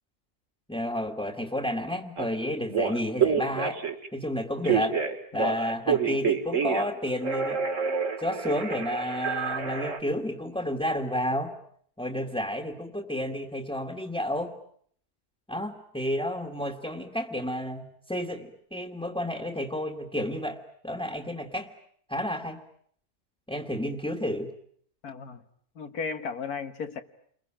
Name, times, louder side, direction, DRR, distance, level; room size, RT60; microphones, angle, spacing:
voice 1, 0.7-3.8 4.1-5.0 5.3-7.6 8.2-11.6 12.0-14.6 15.5-21.7 22.1-22.6 23.5-24.5, equal, 5° left, 2 dB, 1.8 m, -31 dB
Telephone, 2.2-2.3 2.7-4.1 4.6-7.0 7.2-10.0, right 6 dB, 60° right, 2.4 m, -28 dB
voice 2, 25.0-25.4 25.8-27.0, left 5 dB, 85° left, 8 dB, 2.0 m, -35 dB
30.0 x 22.5 x 8.8 m, 0.64 s
omnidirectional pair, 1.6 m